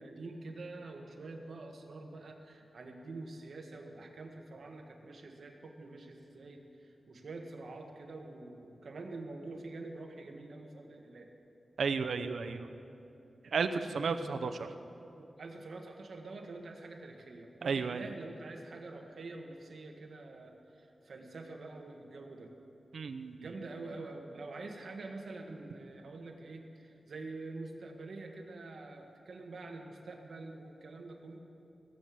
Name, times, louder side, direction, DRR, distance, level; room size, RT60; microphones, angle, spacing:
voice 1, 0.0-11.3 13.7-14.0 14.3-14.5 15.2-22.5 23.4-31.4, right 3 dB, 65° right, 2 dB, 1.6 m, -46 dB
voice 2, 11.8-12.7 13.4-14.7 17.6-18.1 22.9-23.5, right 5 dB, 90° right, 8 dB, 0.7 m, -33 dB
18.0 x 7.8 x 8.4 m, 2.8 s
wide cardioid pair, 150°, 0 cm